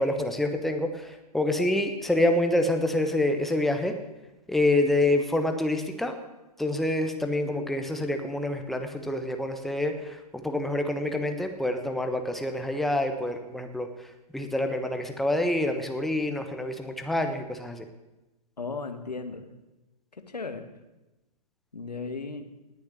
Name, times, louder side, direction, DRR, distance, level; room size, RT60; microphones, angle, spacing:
voice 1, 0.0-3.9 4.5-6.1 6.6-17.8, left 1 dB, ahead, 6 dB, 1.2 m, -27 dB
voice 2, 18.6-19.4 20.1-20.6 21.7-22.5, left 4 dB, 80° left, 8 dB, 1.8 m, -35 dB
19.0 x 7.2 x 9.8 m, 1.0 s
figure-of-eight pair, 115°, 20 cm